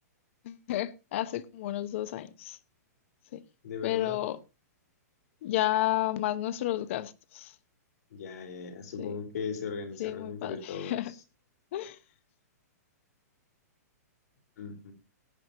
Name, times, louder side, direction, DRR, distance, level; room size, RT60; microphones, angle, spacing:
voice 1, 0.4-2.6 3.3-3.4 3.8-4.4 5.4-7.5 9.0-9.1 10.0-11.1 11.7-12.0, left 14 dB, 45° left, 0.8 m, -31 dB
voice 2, 3.6-4.2 8.1-11.0 14.6-14.9, left 6 dB, 70° left, 3.5 m, -38 dB
17.5 x 9.4 x 2.8 m
hypercardioid pair, 160°, 9 cm